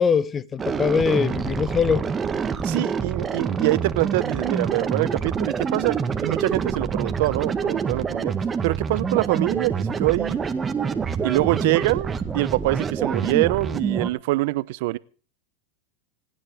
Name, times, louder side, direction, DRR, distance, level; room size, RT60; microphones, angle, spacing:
voice 1, 0.0-2.0, left 6 dB, 25° left, 0.9 m, -22 dB
sound 1, 0.6-14.1, right 6 dB, 20° right, 1.9 m, -26 dB
voice 2, 2.6-8.3 8.6-10.4 11.2-15.0, right 20 dB, 65° right, 0.8 m, -24 dB
29.5 x 10.0 x 3.6 m
hypercardioid pair, 110°, 0 cm